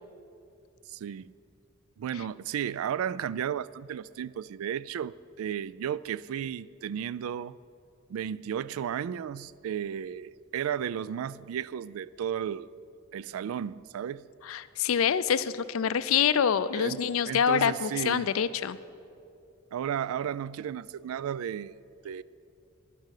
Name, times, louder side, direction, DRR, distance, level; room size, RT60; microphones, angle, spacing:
voice 1, 0.9-1.3 2.0-7.6 8.1-12.7 13.1-14.3 16.7-18.3 19.7-21.8 22.0-22.2, right 9 dB, 80° right, 0.3 m, -34 dB
voice 2, 14.4-18.8, left 7 dB, 70° left, 0.4 m, -26 dB
11.0 x 10.5 x 6.5 m
head